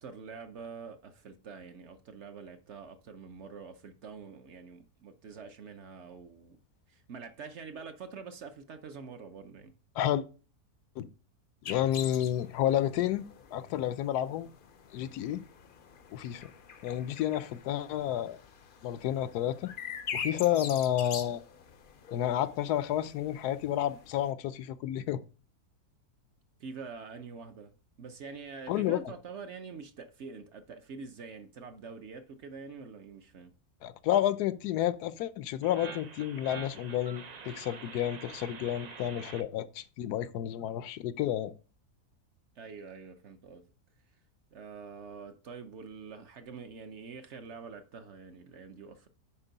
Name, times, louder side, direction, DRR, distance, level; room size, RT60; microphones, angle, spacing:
voice 1, 0.0-6.6 6.9-9.7 26.6-33.5 42.6-43.6 44.5-49.1, right 5 dB, 55° right, 0.9 m, -46 dB
sound 1, 11.6-24.3, left 6 dB, 55° left, 0.6 m, -45 dB
voice 2, 11.7-13.2 13.5-14.5 14.9-15.4 16.1-16.5 16.8-18.4 18.8-19.7 20.1-21.4 22.1-25.2 28.7-29.0 33.8-41.5, left 11 dB, 85° left, 1.2 m, -30 dB
sound 2, 35.6-39.4, right 6 dB, 80° right, 0.3 m, -46 dB
9.9 x 4.4 x 4.0 m
omnidirectional pair, 1.6 m